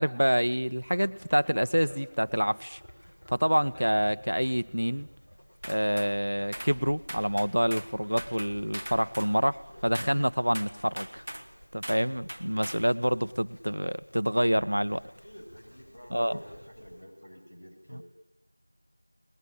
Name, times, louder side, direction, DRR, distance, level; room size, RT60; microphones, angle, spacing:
voice 1, 0.0-2.8 3.3-5.1 5.7-11.2 11.7-15.0 16.1-16.4, equal, 60° right, 14 dB, 1.4 m, -27 dB
sound 1, 0.7-17.0, equal, 15° left, 3.7 m, -52 dB
sound 2, 5.6-6.1 6.5-6.8 7.1-7.9 8.2-9.3 9.9-10.2 10.5-11.5 11.8-12.0 12.3-12.9, equal, 30° right, 1.7 m, -40 dB
voice 2, 15.2-18.0, equal, 35° left, 2 dB, 6.9 m, -48 dB
30.0 x 21.5 x 9.1 m, 0.86 s
figure-of-eight pair, 180°, 0 cm